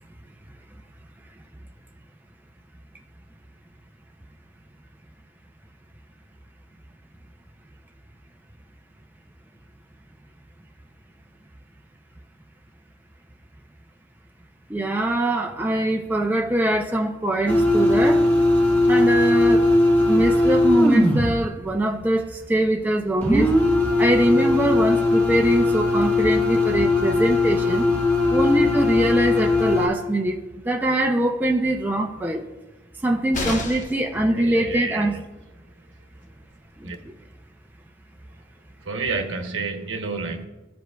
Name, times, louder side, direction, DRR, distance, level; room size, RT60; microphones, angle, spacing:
voice 1, 14.7-18.3 18.9-19.6 20.1-23.5 24.0-27.9 28.3-30.4 30.7-32.4 33.0-35.2 36.8-36.9, right 1 dB, 10° right, 2 dB, 0.4 m, -22 dB
sound 1, 17.5-21.3 23.2-29.9, left 2 dB, 10° left, 1.1 m, -19 dB
sound 2, 33.3-34.1 36.0-36.1 36.4-36.5, left 2 dB, 40° left, 0.8 m, -29 dB
voice 2, 34.3-35.2 36.8-37.0 38.8-40.4, right 4 dB, 70° right, 4 dB, 1.0 m, -29 dB
14.5 x 5.1 x 2.3 m, 1.1 s
head